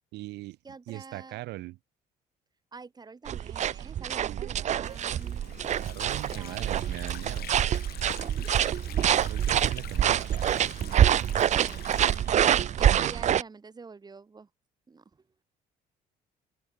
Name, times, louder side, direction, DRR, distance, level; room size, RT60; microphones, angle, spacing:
voice 1, 0.1-0.6 0.9-1.8 4.2-4.8 5.8-7.5 8.4-8.5 9.2-11.3 12.8-13.1, right 19 dB, 85° right, 1.5 m, -41 dB
voice 2, 0.6-1.4 2.7-5.4 6.3-7.0 8.2-9.0 9.5-9.8 11.5-11.8 12.8-14.5 14.9-15.2, right 4 dB, 25° right, 3.4 m, -47 dB
sound 1, 3.3-13.4, right 10 dB, 45° right, 0.6 m, -26 dB
Water / Sink (filling or washing), 4.8-13.4, left 13 dB, 65° left, 3.6 m, -47 dB
open air
cardioid pair, 110°, 17 cm